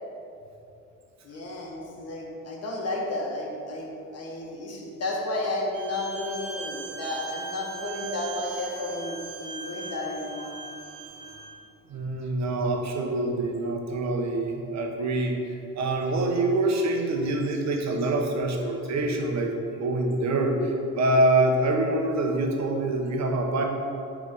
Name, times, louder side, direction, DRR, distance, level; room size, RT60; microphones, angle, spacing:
voice 1, 1.2-10.5, left 2 dB, 55° left, -2 dB, 1.7 m, -32 dB
Bowed string instrument, 5.7-11.5, right 4 dB, 90° right, 1.2 m, -40 dB
voice 2, 11.9-15.4 15.7-19.5 19.8-23.6, right 2 dB, 65° right, 2 dB, 1.1 m, -25 dB
8.4 x 3.7 x 5.4 m, 2.6 s
cardioid pair, 90°, 30 cm